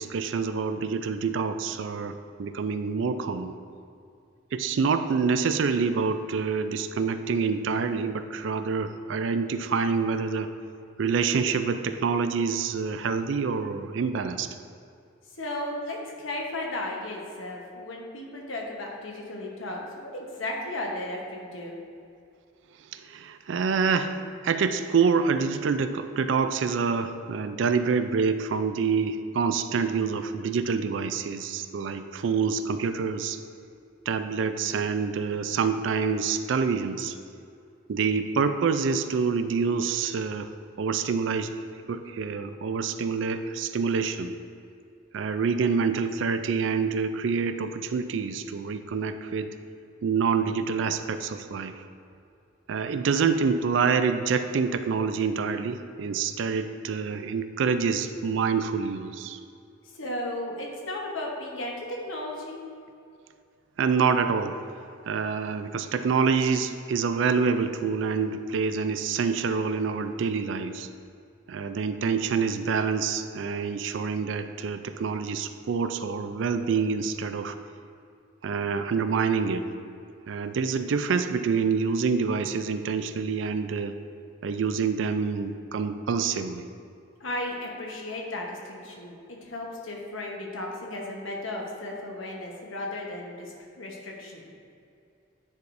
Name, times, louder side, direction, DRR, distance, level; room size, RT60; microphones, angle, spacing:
voice 1, 0.0-3.5 4.5-10.5 11.0-14.5 22.9-33.4 34.1-37.2 37.9-40.5 40.8-41.5 41.9-44.3 45.1-49.6 50.0-51.7 52.7-59.4 63.8-64.6 65.1-70.9 71.5-77.6 78.4-79.7 80.3-83.9 84.4-86.7, right 5 dB, 65° right, 9 dB, 0.4 m, -27 dB
voice 2, 15.4-16.0 16.2-19.8 20.1-21.8 59.9-62.6 87.2-94.5, left 1 dB, 80° left, -1 dB, 1.1 m, -35 dB
9.5 x 4.7 x 2.6 m, 2.5 s
head